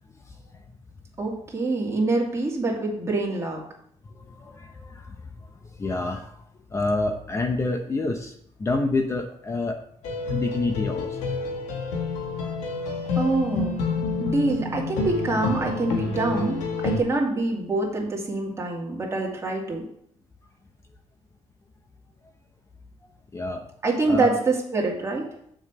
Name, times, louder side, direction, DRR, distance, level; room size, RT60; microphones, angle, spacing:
voice 1, 1.2-3.6 13.1-13.8 14.2-19.8 23.8-25.3, right 3 dB, 25° right, -1 dB, 2.4 m, -25 dB
voice 2, 4.1-5.3 5.8-6.4 6.7-8.3 8.6-9.8 10.2-11.3 12.4-12.5 23.3-23.6 24.1-24.3, left 2 dB, 25° left, 4 dB, 0.9 m, -28 dB
sound 1, 10.0-17.0, left 4 dB, 90° left, 1.9 m, -28 dB
7.1 x 5.8 x 6.0 m, 0.68 s
cardioid pair, 120°, 11 cm